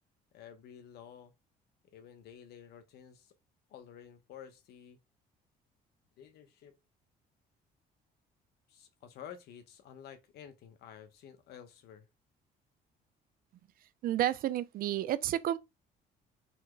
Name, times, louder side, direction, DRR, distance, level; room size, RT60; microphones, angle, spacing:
voice 1, 0.3-1.3 1.9-3.3 3.7-5.0 6.2-6.8 8.7-12.1, left 9 dB, 75° left, 0.9 m, -51 dB
voice 2, 14.0-15.6, right 12 dB, 60° right, 0.5 m, -31 dB
4.2 x 2.2 x 4.6 m
cardioid pair, 110°, 17 cm